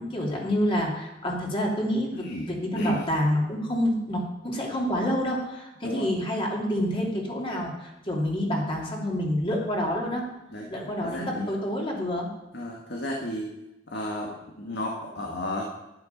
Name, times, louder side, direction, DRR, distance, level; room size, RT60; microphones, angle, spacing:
voice 1, 0.0-10.3 10.7-12.3, equal, 30° left, -2 dB, 2.8 m, -28 dB
voice 2, 2.1-2.5 2.8-3.0 5.8-6.1 10.5-10.7 11.0-11.5 12.5-13.5 13.9-15.6, left 1 dB, 65° left, -1 dB, 1.8 m, -33 dB
11.5 x 10.5 x 5.3 m, 0.96 s
head